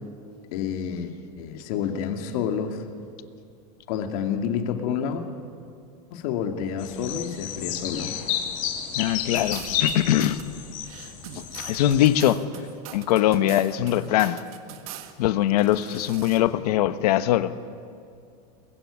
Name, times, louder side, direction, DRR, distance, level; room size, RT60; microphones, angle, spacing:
voice 1, 0.5-2.8 3.9-5.2 6.1-8.1, left 7 dB, 65° left, 4 dB, 2.4 m, -29 dB
sound 1, 6.8-12.2, left 9 dB, 40° left, 2.5 m, -31 dB
voice 2, 8.9-10.4 11.6-12.5 12.9-14.4 15.2-17.5, left 13 dB, 80° left, 12 dB, 1.2 m, -22 dB
sound 2, 9.3-10.4 10.8-15.1 15.5-16.4, right 11 dB, 65° right, 1.8 m, -42 dB
22.0 x 21.0 x 9.9 m, 2.3 s
supercardioid pair, 155°, 20 cm